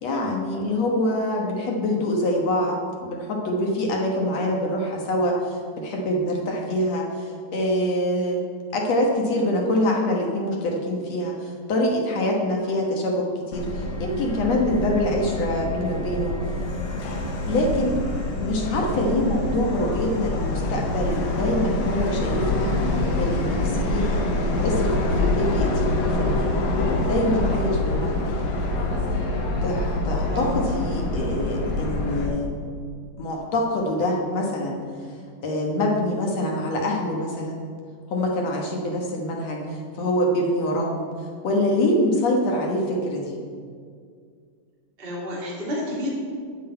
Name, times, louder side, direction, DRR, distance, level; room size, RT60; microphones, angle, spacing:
voice 1, 0.0-8.4 8.7-16.4 17.4-18.0 18.4-22.7 23.2-24.2 24.6-26.5 27.0-28.5 29.6-32.5 33.2-34.8 35.4-37.6 38.1-41.1 41.4-43.4, left 1 dB, 60° left, 0 dB, 2.0 m, -25 dB
Subway metro underground, 13.5-32.3, left 2 dB, 85° left, 3.1 m, -25 dB
voice 2, 45.0-46.1, equal, 15° right, -7 dB, 2.5 m, -30 dB
9.6 x 6.4 x 8.9 m, 2.1 s
omnidirectional pair, 4.0 m